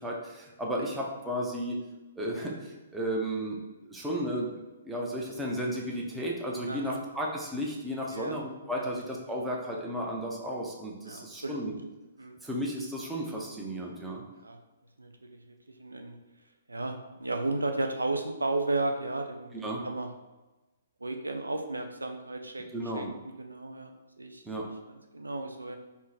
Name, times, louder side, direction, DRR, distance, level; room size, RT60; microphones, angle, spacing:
voice 1, 0.0-1.8 2.2-4.5 4.8-11.8 12.4-14.2 19.5-19.8 22.7-23.1 24.4-24.7, equal, 5° right, -2 dB, 0.5 m, -34 dB
voice 2, 6.7-7.0 8.1-8.4 11.1-11.7 12.2-12.4 14.4-14.6 15.0-16.2 16.7-19.5 19.8-20.1 21.0-22.7 23.0-23.9 24.2-24.4 25.1-25.8, right 2 dB, 85° right, 5 dB, 0.3 m, -34 dB
3.7 x 2.0 x 2.7 m, 1.1 s
figure-of-eight pair, 125°, 0 cm